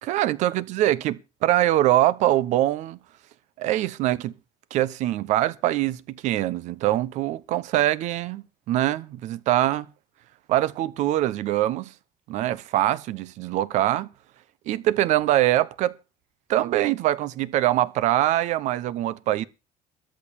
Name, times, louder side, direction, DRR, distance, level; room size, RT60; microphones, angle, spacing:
voice 1, 0.0-3.0 3.6-4.3 4.7-9.9 10.5-11.9 12.3-14.1 14.7-15.9 16.5-19.4, right 14 dB, 65° right, 1.0 m, -23 dB
13.5 x 9.0 x 7.3 m
cardioid pair, 135°, 13 cm